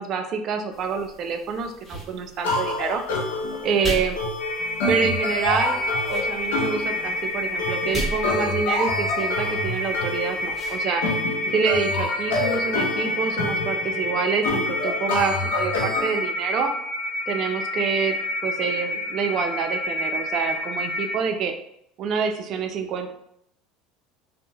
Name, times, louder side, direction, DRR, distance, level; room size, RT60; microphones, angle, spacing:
voice 1, 0.0-3.0 3.6-4.2 4.9-5.8 6.1-11.0 11.5-16.7 17.3-18.2 18.4-21.5 22.0-23.1, right 6 dB, 50° right, 6 dB, 0.4 m, -27 dB
sound 1, 0.7-10.8, right 1 dB, 20° left, 1.4 m, -38 dB
sound 2, 2.4-16.2, left 2 dB, 85° left, 0.6 m, -28 dB
sound 3, 4.4-21.1, left 1 dB, 55° left, 1.1 m, -29 dB
2.6 x 2.1 x 2.8 m, 0.73 s
supercardioid pair, 95°, 0 cm